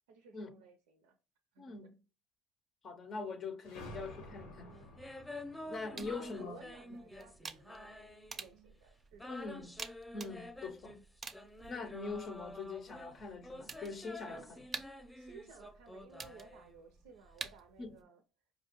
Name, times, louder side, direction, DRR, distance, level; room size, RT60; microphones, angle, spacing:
voice 1, 0.1-1.2 1.5-1.7 3.7-4.0 4.6-5.0 5.6-9.7 14.3-14.6 15.0-18.2, right 4 dB, 90° right, 0.5 m, -57 dB
voice 2, 1.6-2.0 2.8-4.8 5.7-6.6 9.3-9.8 10.1-11.0 11.7-14.6 17.8-18.0, left 4 dB, 45° left, 0.6 m, -43 dB
sound 1, 3.6-8.1, left 1 dB, 90° left, 0.9 m, -53 dB
sound 2, 5.0-8.7 9.1-17.0, left 1 dB, 10° left, 0.7 m, -49 dB
sound 3, 6.0-18.0, right 5 dB, 35° right, 0.5 m, -51 dB
4.9 x 2.3 x 2.9 m
supercardioid pair, 80°, 0 cm